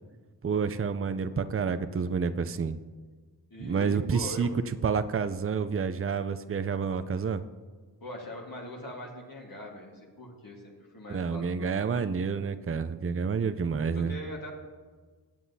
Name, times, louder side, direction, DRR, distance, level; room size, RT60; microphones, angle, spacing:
voice 1, 0.4-2.8 3.6-4.5 4.8-7.4 11.1-14.1, right 6 dB, 35° right, 11 dB, 0.5 m, -29 dB
voice 2, 3.5-4.5 8.0-12.1 13.9-14.5, equal, 55° left, -2 dB, 1.7 m, -42 dB
17.5 x 7.8 x 2.7 m, 1.4 s
wide cardioid pair, 60°, 42 cm